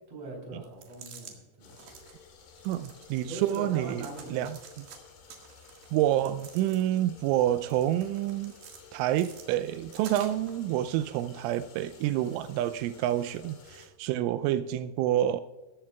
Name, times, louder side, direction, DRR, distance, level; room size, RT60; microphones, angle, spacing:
voice 1, 0.1-1.8 3.2-4.5, right 2 dB, 35° right, 0 dB, 4.2 m, -41 dB
sound 1, 0.6-1.4 1.7-2.2 2.6-3.7 4.0-5.0 5.3-7.1 7.5-8.8 9.2-10.6, right 7 dB, 65° right, 3.5 m, -49 dB
sound 2, 1.6-13.9, left 5 dB, 70° left, 4.6 m, -54 dB
voice 2, 2.6-4.6 5.9-8.6 8.9-15.4, right 12 dB, 85° right, 12 dB, 3.0 m, -28 dB
16.5 x 14.0 x 2.3 m, 1.2 s
omnidirectional pair, 5.5 m